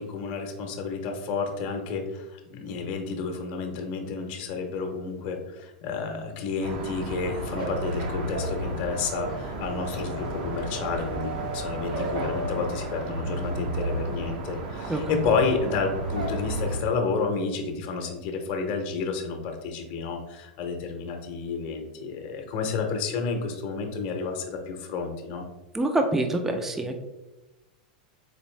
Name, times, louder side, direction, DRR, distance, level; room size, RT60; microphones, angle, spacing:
voice 1, 0.0-25.4, left 4 dB, 45° left, 3 dB, 0.7 m, -30 dB
sound 1, 6.6-16.8, right 2 dB, 70° right, 0.8 m, -33 dB
sound 2, 7.5-9.4 9.7-16.5 16.8-17.3 17.6-18.1, right 2 dB, 85° right, 1.5 m, -39 dB
voice 2, 25.7-27.0, right 2 dB, 10° right, 5 dB, 0.3 m, -25 dB
4.1 x 2.6 x 3.1 m, 1.0 s
supercardioid pair, 140°, 4 cm